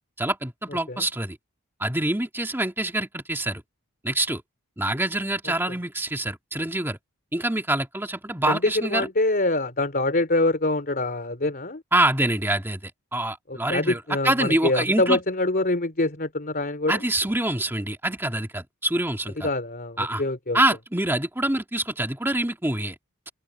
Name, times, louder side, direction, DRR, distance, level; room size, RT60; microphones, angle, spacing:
voice 1, 0.2-1.4 1.8-3.6 4.0-4.4 4.8-7.0 7.3-9.1 11.9-15.2 16.9-19.5 20.0-20.2 20.5-23.0, right 1 dB, 10° right, 2.3 m, -25 dB
voice 2, 8.5-11.8 13.5-17.0 19.4-20.6, left 2 dB, 40° left, 3.6 m, -25 dB
open air
head